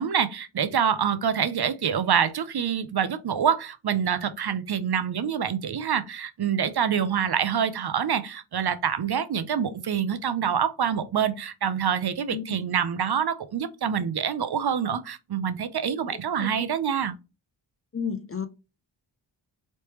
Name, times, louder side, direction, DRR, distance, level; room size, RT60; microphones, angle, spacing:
voice 1, 0.0-17.1, right 8 dB, 55° right, 0.5 m, -26 dB
voice 2, 16.1-16.7 17.9-18.5, left 6 dB, 30° left, 0.4 m, -33 dB
3.2 x 3.1 x 2.9 m
wide cardioid pair, 70°, 48 cm